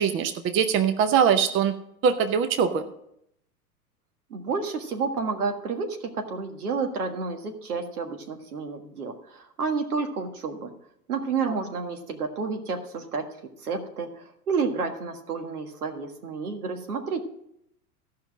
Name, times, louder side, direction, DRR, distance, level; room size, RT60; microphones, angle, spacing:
voice 1, 0.0-1.7 2.0-2.9 11.4-11.5, right 7 dB, 25° right, 9 dB, 0.7 m, -22 dB
voice 2, 4.3-10.7 11.1-13.2 13.6-17.2, right 4 dB, 75° right, 5 dB, 1.8 m, -30 dB
14.5 x 5.7 x 6.2 m, 0.75 s
hypercardioid pair, 95°, 45 cm